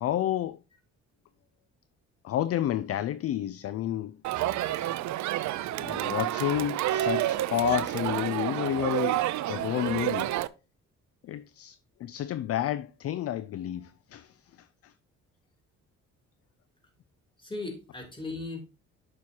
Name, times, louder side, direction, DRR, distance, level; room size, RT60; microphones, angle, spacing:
voice 1, 0.0-0.6 2.2-4.2 5.8-10.3 11.2-14.9, left 12 dB, 50° left, 0.4 m, -30 dB
Crowd, 4.2-10.5, right 13 dB, 70° right, 0.5 m, -29 dB
voice 2, 17.4-18.7, left 3 dB, 15° left, 3.0 m, -38 dB
8.6 x 6.3 x 2.8 m
cardioid pair, 90°, 30 cm